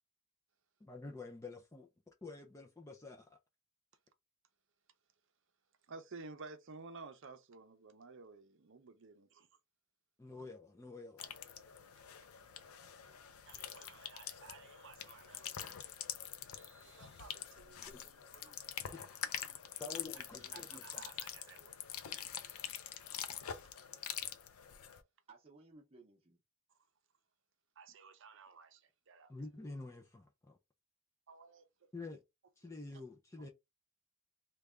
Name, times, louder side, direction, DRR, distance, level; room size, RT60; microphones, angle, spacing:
voice 1, 0.8-1.9 2.2-3.4 10.2-11.3 17.9-18.0 18.9-19.0 19.8-21.0 29.3-30.6 31.9-32.2 32.6-33.5, left 3 dB, 15° left, 0.4 m, -48 dB
voice 2, 5.9-9.5 13.5-15.7 16.6-17.8 18.3-18.4 20.5-21.7 23.6-24.0 27.8-29.3 31.3-31.6 32.6-32.7 33.4-33.5, right 4 dB, 60° right, 0.6 m, -54 dB
sound 1, 11.2-25.0, left 9 dB, 85° left, 0.5 m, -45 dB
voice 3, 17.7-18.6 19.4-19.9 20.3-20.9 25.3-26.4, right 3 dB, 30° right, 0.8 m, -62 dB
3.3 x 2.3 x 3.5 m
head